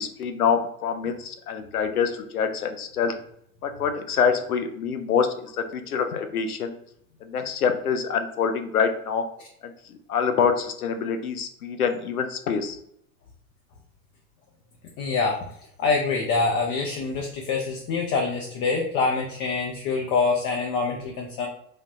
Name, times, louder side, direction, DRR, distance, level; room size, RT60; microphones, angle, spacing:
voice 1, 0.0-3.1 3.6-6.7 7.2-9.3 9.6-12.8, left 6 dB, 85° left, 7 dB, 0.5 m, -26 dB
voice 2, 15.0-15.4 15.8-21.5, left 4 dB, 30° left, 1 dB, 0.4 m, -25 dB
3.4 x 2.3 x 2.6 m, 0.70 s
figure-of-eight pair, 90°, 43 cm